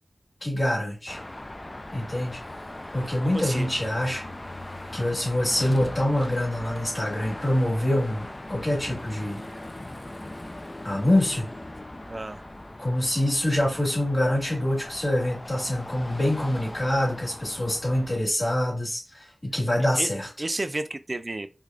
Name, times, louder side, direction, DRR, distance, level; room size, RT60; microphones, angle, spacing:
voice 1, 0.4-1.2 1.9-2.4 2.9-4.3 4.9-9.4 10.8-11.5 12.8-20.3, left 1 dB, 50° left, 1.9 m, -25 dB
Car passing by / Traffic noise roadway noise / Engine, 1.1-18.2, left 1 dB, 30° left, 0.3 m, -40 dB
voice 2, 3.2-3.7 12.1-12.5 17.9-18.0 20.0-20.1 20.4-21.5, right 2 dB, 45° right, 0.3 m, -31 dB
4.8 x 2.2 x 2.4 m
wide cardioid pair, 75°, 0 cm